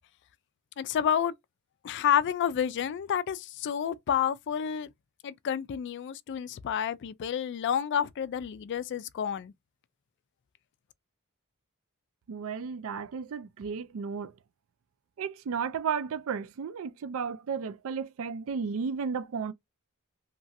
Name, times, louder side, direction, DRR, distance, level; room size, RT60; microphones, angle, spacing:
voice 1, 0.8-1.3 1.8-4.9 5.2-9.5, left 8 dB, 55° left, 0.3 m, -29 dB
voice 2, 12.3-14.3 15.2-19.5, right 6 dB, 65° right, 0.4 m, -33 dB
2.9 x 2.5 x 2.6 m
head